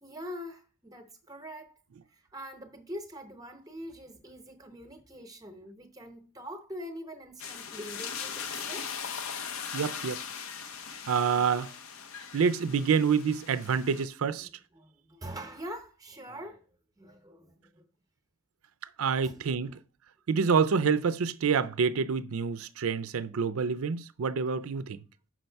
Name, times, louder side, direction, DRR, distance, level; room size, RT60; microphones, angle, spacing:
voice 1, 0.0-1.8 2.1-8.9 14.4-17.8 19.2-19.8, equal, 15° right, 0.8 m, -44 dB
sound 1, 7.4-14.0, left 7 dB, 85° left, 0.7 m, -39 dB
voice 2, 9.7-10.2 11.1-11.7 12.3-14.5 19.0-19.7 20.3-25.0, right 6 dB, 90° right, 0.5 m, -27 dB
6.2 x 5.3 x 4.5 m
head